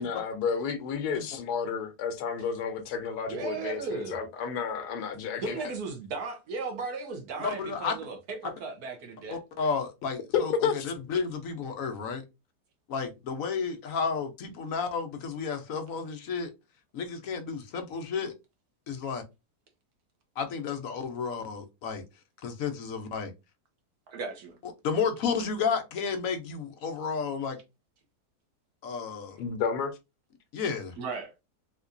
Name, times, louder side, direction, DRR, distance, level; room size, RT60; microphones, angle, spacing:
voice 1, 0.0-5.7 10.3-10.9 29.4-30.0, left 6 dB, 85° left, 1.2 m, -31 dB
voice 2, 3.3-4.2 5.4-9.4 24.1-24.6 31.0-31.3, right 4 dB, 75° right, 1.4 m, -36 dB
voice 3, 7.4-8.0 8.4-8.5 9.3-12.2 12.9-16.5 16.9-18.3 18.9-19.2 20.4-22.0 22.4-23.3 24.8-27.6 28.8-29.4 30.5-30.9, left 5 dB, 65° left, 1.0 m, -32 dB
3.6 x 2.8 x 2.5 m
omnidirectional pair, 1.7 m